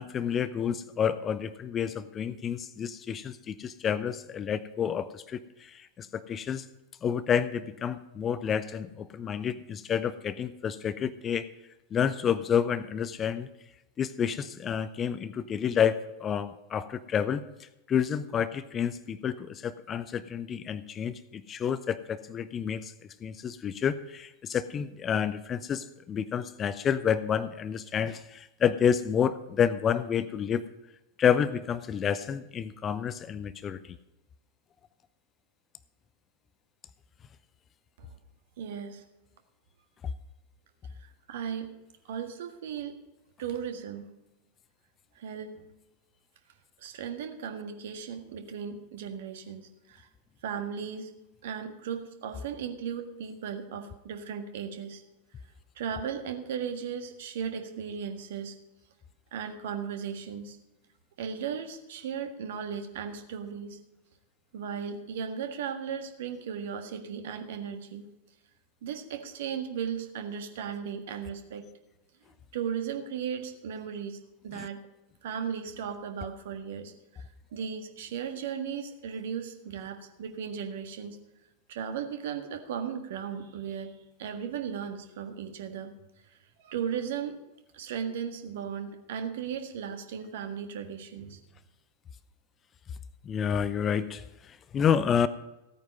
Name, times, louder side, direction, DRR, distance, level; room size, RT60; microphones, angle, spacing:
voice 1, 0.0-6.7 7.0-11.5 11.9-13.5 14.0-22.9 23.2-30.7 31.2-34.0 74.5-74.7 93.2-95.3, left 8 dB, 25° left, 15 dB, 0.6 m, -29 dB
voice 2, 38.6-39.0 41.0-41.7 42.1-43.0 43.4-44.1 45.1-45.6 46.8-50.1 50.4-51.1 51.4-55.0 55.7-58.6 59.3-60.6 61.2-63.8 64.5-68.1 68.8-71.7 72.5-74.8 75.2-77.2 77.5-81.2 81.7-85.9 86.3-87.4 87.7-91.4, right 7 dB, 55° right, 7 dB, 1.6 m, -36 dB
15.5 x 9.2 x 5.3 m, 0.97 s
figure-of-eight pair, 90°, 0 cm